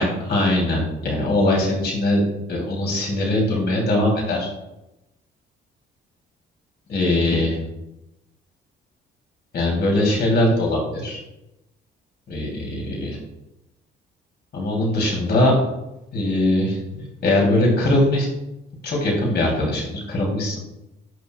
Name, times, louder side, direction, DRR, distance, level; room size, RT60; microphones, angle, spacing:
voice 1, 0.0-2.2 2.5-4.5 6.9-7.6 9.5-11.2 12.3-13.2 14.5-15.6 16.1-18.3 18.8-20.6, left 1 dB, 55° left, -2 dB, 3.4 m, -21 dB
17.5 x 6.3 x 2.4 m, 0.91 s
cardioid pair, 90°, 20 cm